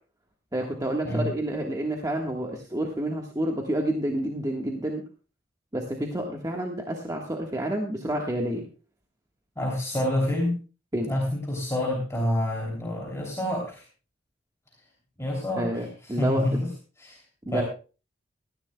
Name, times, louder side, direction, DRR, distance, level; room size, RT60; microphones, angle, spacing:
voice 1, 0.5-5.0 5.7-8.6 10.9-11.1 15.6-16.6 17.5-17.6, right 1 dB, 20° right, 1 dB, 1.5 m, -29 dB
voice 2, 9.6-10.5 11.1-13.8 15.2-16.7 17.0-17.2 17.5-17.6, left 1 dB, 15° left, -2 dB, 3.1 m, -28 dB
18.0 x 14.0 x 2.3 m, 0.35 s
head